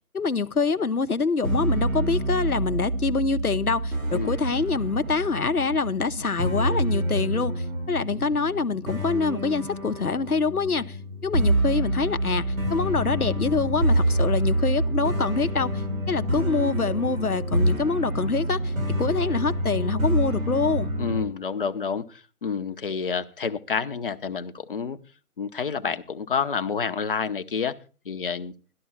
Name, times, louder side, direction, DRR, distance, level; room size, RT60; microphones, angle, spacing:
voice 1, 0.1-11.0 11.2-18.7 19.0-20.9, left 4 dB, 85° left, 0.9 m, -25 dB
sound 1, 1.4-21.2, right 1 dB, 65° right, 2.2 m, -27 dB
voice 2, 21.0-25.0 25.4-27.8 28.0-28.5, left 6 dB, 40° left, 0.9 m, -29 dB
12.5 x 12.5 x 4.3 m
figure-of-eight pair, 145°, 44 cm